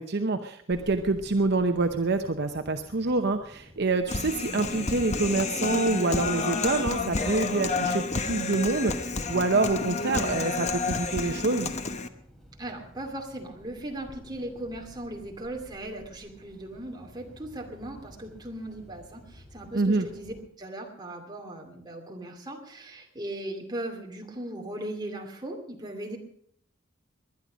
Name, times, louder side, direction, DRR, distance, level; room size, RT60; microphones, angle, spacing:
voice 1, 0.0-11.7 19.7-20.1, right 3 dB, 55° right, 6 dB, 0.8 m, -26 dB
sound 1, 0.7-20.4, equal, ahead, 3.3 m, -52 dB
Human voice, 4.1-12.1, left 4 dB, 35° left, 0.9 m, -30 dB
voice 2, 12.6-26.2, right 1 dB, 20° right, 2 dB, 2.6 m, -38 dB
20.5 x 11.0 x 5.1 m, 0.64 s
head